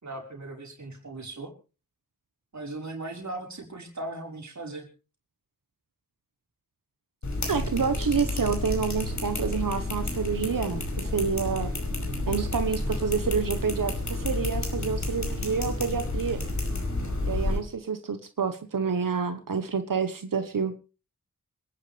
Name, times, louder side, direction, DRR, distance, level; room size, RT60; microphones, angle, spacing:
voice 1, 0.0-1.5 2.5-4.9, right 2 dB, 60° right, 1 dB, 5.4 m, -38 dB
sound 1, 7.2-17.6, left 2 dB, 60° left, 5.3 m, -30 dB
voice 2, 7.5-11.7 12.3-16.4 17.3-20.7, right 6 dB, 80° right, 8 dB, 1.3 m, -28 dB
26.5 x 10.5 x 3.4 m, 0.34 s
wide cardioid pair, 65°, 33 cm